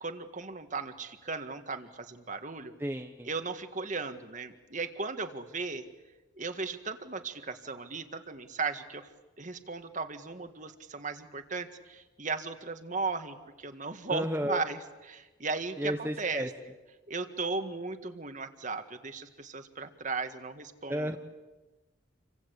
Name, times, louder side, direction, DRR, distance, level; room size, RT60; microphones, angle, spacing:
voice 1, 0.0-2.7 3.2-5.8 6.4-9.1 9.4-14.8 15.0-16.5 17.1-21.2, right 4 dB, 40° right, 8 dB, 1.8 m, -36 dB
voice 2, 2.8-3.3 14.1-14.6 15.8-16.5 20.9-21.2, equal, 10° right, 4 dB, 1.0 m, -32 dB
29.0 x 24.5 x 8.3 m, 1.2 s
head